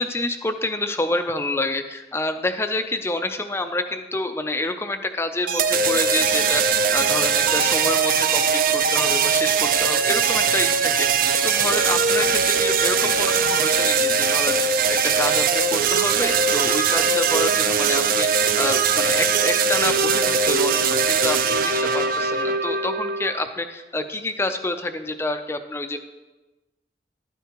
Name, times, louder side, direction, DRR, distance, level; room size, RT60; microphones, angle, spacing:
voice 1, 0.0-26.0, left 2 dB, 15° left, 8 dB, 0.4 m, -28 dB
sound 1, 5.5-23.4, right 5 dB, 50° right, 0.4 m, -20 dB
12.0 x 9.2 x 2.9 m, 1.1 s
head